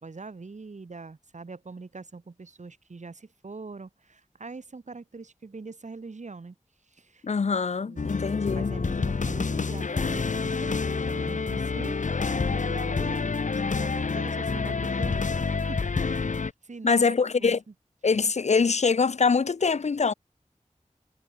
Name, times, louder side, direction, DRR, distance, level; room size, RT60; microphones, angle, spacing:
voice 1, 0.0-6.5 6.9-7.3 7.9-12.0 12.4-17.1 17.4-17.5, right 4 dB, 65° right, 1.6 m, -42 dB
voice 2, 7.2-8.7 16.8-17.6 18.0-20.1, left 5 dB, 60° left, 0.5 m, -24 dB
sound 1, 8.0-16.5, left 4 dB, 75° left, 1.1 m, -28 dB
wide cardioid pair, 70°, 13 cm